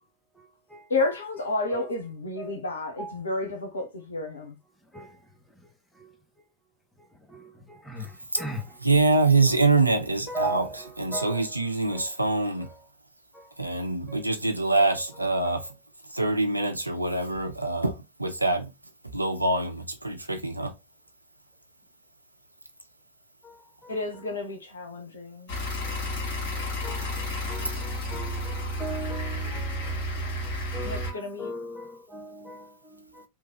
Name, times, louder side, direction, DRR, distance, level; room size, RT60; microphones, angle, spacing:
voice 1, 0.9-4.6 23.9-25.5 30.8-31.5, left 2 dB, 70° left, 0.9 m, -31 dB
voice 2, 8.8-10.7 11.0-12.7 13.6-15.7 16.1-18.7 19.1-20.7, right 3 dB, 85° right, 0.5 m, -24 dB
voice 3, 10.3-10.7 11.1-11.4 11.9-12.0 14.8-14.9 26.8-27.1 27.5-27.7 28.1-28.5 28.8-29.6 30.7-31.1 31.4-31.8 32.1-32.6, right 1 dB, 5° left, 0.8 m, -35 dB
sound 1, 25.5-31.1, left 1 dB, 45° left, 1.5 m, -31 dB
3.1 x 2.3 x 3.0 m
figure-of-eight pair, 90°, 0 cm